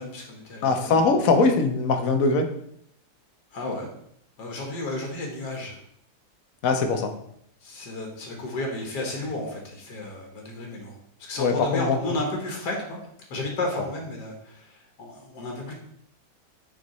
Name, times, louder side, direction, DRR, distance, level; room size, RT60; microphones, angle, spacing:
voice 1, 0.0-1.0 3.5-3.9 4.4-5.8 7.6-13.0 13.3-15.7, left 2 dB, 75° left, 0 dB, 1.9 m, -33 dB
voice 2, 0.6-2.5 6.6-7.1 11.4-12.0, left 4 dB, 60° left, 5 dB, 1.2 m, -21 dB
6.5 x 5.2 x 4.2 m, 0.70 s
omnidirectional pair, 1.8 m